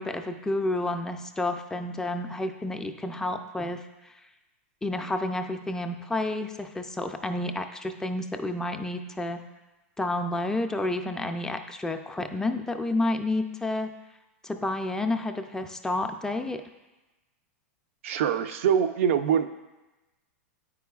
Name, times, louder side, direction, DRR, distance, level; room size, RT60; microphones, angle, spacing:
voice 1, 0.0-3.8 4.8-9.4 10.0-13.9 14.4-16.6, left 2 dB, 10° left, 6 dB, 0.3 m, -30 dB
voice 2, 18.0-19.5, right 8 dB, 70° right, 9 dB, 0.4 m, -24 dB
8.9 x 4.7 x 2.3 m, 1.1 s
hypercardioid pair, 120°, 7 cm